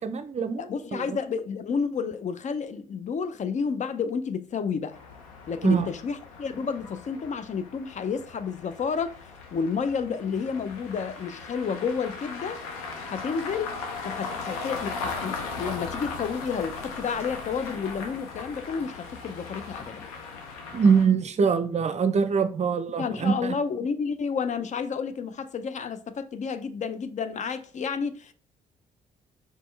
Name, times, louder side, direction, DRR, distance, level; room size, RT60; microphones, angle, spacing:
voice 1, 0.0-1.2 5.6-5.9 20.7-23.6, right 6 dB, 40° right, 0.5 m, -24 dB
voice 2, 0.6-5.0 5.5-9.1 9.5-12.6 13.0-13.7 14.0-20.1 23.0-28.3, left 6 dB, 40° left, 0.5 m, -30 dB
sound 1, 4.9-21.1, left 4 dB, 85° left, 0.7 m, -38 dB
4.3 x 3.1 x 3.2 m
hypercardioid pair, 50°, 18 cm